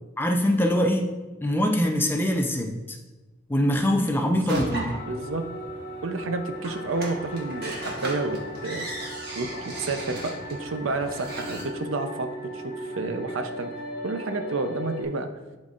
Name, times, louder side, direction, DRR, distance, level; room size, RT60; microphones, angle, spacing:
voice 1, 0.2-1.1 1.4-3.0 3.5-4.8, equal, 10° left, 3 dB, 0.5 m, -23 dB
sound 1, 4.5-11.6, right 1 dB, 50° right, 1.3 m, -37 dB
sound 2, 4.9-15.0, equal, 55° left, 0.9 m, -38 dB
voice 2, 5.1-5.4 6.0-8.9 9.4-13.7 14.0-15.3, right 3 dB, 70° right, 7 dB, 0.6 m, -30 dB
11.0 x 4.0 x 2.4 m, 1.2 s
head